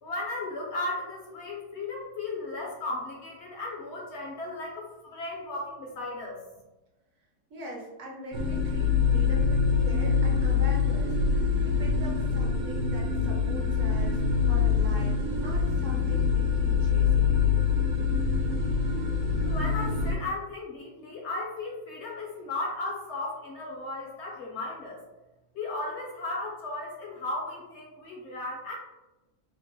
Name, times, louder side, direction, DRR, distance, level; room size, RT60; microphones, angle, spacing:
voice 1, 0.0-6.4 19.4-25.0 25.5-28.8, left 2 dB, 60° left, -2 dB, 0.8 m, -35 dB
voice 2, 7.5-17.4, right 1 dB, 65° right, -2 dB, 1.1 m, -42 dB
sound 1, 8.3-20.1, left 5 dB, 90° right, 1.1 m, -25 dB
3.6 x 2.1 x 3.0 m, 1.0 s
omnidirectional pair, 1.5 m